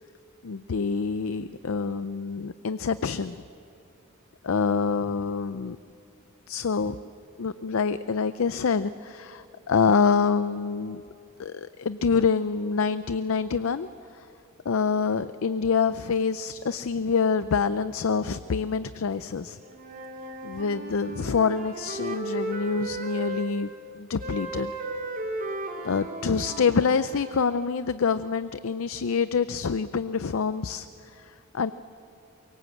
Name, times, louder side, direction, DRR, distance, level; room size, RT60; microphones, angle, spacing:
voice 1, 0.4-3.4 4.4-5.8 6.5-7.0 7.4-11.0 11.4-13.9 14.1-14.3 14.6-19.6 20.4-23.7 24.0-24.7 25.8-31.7, left 5 dB, 75° left, 13 dB, 0.5 m, -26 dB
Wind instrument woodwind instrument, 19.6-23.5 24.2-27.7, right 2 dB, 40° right, 2.7 m, -35 dB
24.5 x 22.5 x 7.8 m, 2.6 s
head